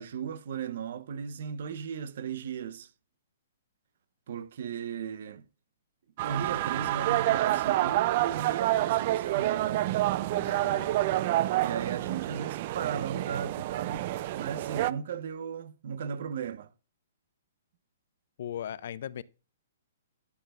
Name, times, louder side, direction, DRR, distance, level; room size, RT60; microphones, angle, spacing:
voice 1, 0.0-2.9 4.3-5.5 6.2-9.9 11.6-14.0 14.3-16.7, right 7 dB, 60° right, 0.9 m, -36 dB
sound 1, 6.2-14.9, right 15 dB, 45° right, 0.5 m, -28 dB
voice 2, 10.3-10.9 18.4-19.2, left 10 dB, 60° left, 0.5 m, -38 dB
13.0 x 7.1 x 2.5 m
hypercardioid pair, 150°, 0 cm